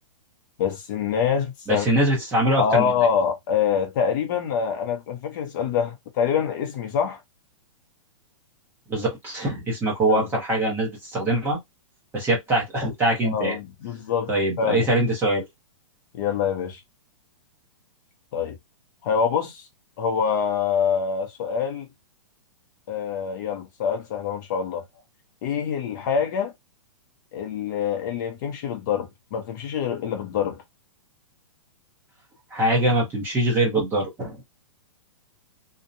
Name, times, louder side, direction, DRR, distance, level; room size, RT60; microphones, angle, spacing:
voice 1, 0.6-1.9 2.6-7.2 10.1-10.2 13.2-14.3 14.6-14.9 16.1-16.8 18.3-18.6 19.0-19.6 20.0-21.9 22.9-24.8 25.4-26.5 27.3-30.6, left 7 dB, 35° left, 0.6 m, -25 dB
voice 2, 1.7-2.9 8.9-11.6 12.1-13.6 14.3-15.4 32.5-34.4, right 1 dB, 10° right, 0.8 m, -23 dB
2.7 x 2.1 x 2.5 m
hypercardioid pair, 165°, 17 cm